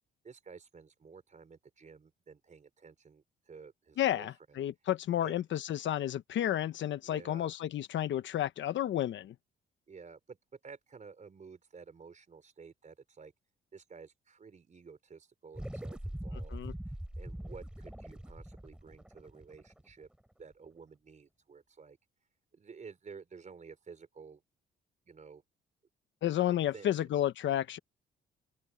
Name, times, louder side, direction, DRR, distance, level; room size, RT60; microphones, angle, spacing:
voice 1, 0.2-4.3 5.2-5.3 7.0-7.5 9.9-13.3 13.7-16.6 17.2-20.1 20.4-22.0 22.5-24.4 25.1-25.4 26.7-26.9, right 5 dB, 40° right, 4.1 m, -52 dB
voice 2, 4.0-9.3 16.5-16.7 26.2-27.8, left 12 dB, 70° left, 1.1 m, -31 dB
sound 1, 15.5-20.2, right 1 dB, 5° right, 3.2 m, -43 dB
open air
cardioid pair, 90°, 20 cm